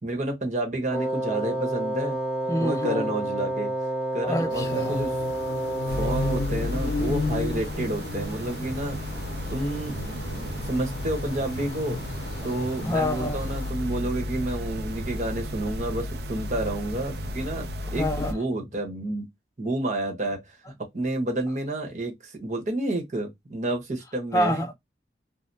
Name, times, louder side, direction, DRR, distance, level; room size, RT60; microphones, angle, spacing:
voice 1, 0.0-2.2 2.6-3.7 4.1-5.1 6.0-9.2 9.5-12.0 12.4-19.3 19.6-20.6 20.9-24.6, right 1 dB, 40° right, 1.1 m, -30 dB
Wind instrument woodwind instrument, 0.9-6.6, right 1 dB, 5° right, 1.0 m, -29 dB
voice 2, 2.5-3.1 4.2-5.0 12.8-13.4 17.9-18.4 24.3-24.7, left 1 dB, 20° left, 0.6 m, -27 dB
sound 1, 4.5-13.7, left 2 dB, 75° left, 0.5 m, -34 dB
sound 2, 5.9-18.3, equal, 65° right, 0.5 m, -33 dB
3.3 x 2.1 x 2.7 m
head